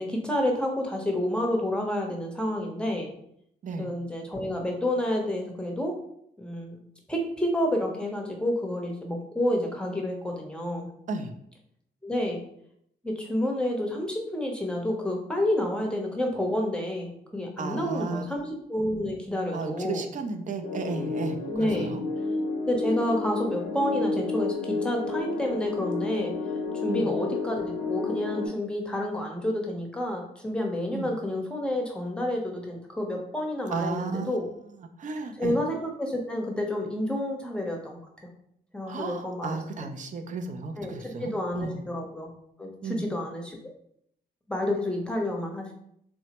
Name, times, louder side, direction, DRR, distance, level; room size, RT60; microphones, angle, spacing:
voice 1, 0.0-3.1 3.8-5.9 6.4-6.8 7.1-10.9 12.0-12.4 13.0-20.1 21.5-21.9 22.7-26.3 26.8-34.5 35.4-38.0 38.7-39.6 40.8-42.3 42.6-43.7 44.5-45.7, left 1 dB, 5° left, 1 dB, 0.7 m, -29 dB
voice 2, 17.6-18.2 19.5-22.0 26.9-27.1 30.9-31.1 33.7-34.3 35.0-35.6 38.9-41.8 42.8-43.1, right 4 dB, 50° right, 7 dB, 0.4 m, -34 dB
sound 1, 20.6-28.5, left 3 dB, 80° left, 0.6 m, -31 dB
3.3 x 2.0 x 2.8 m, 0.70 s
cardioid pair, 85°, 17 cm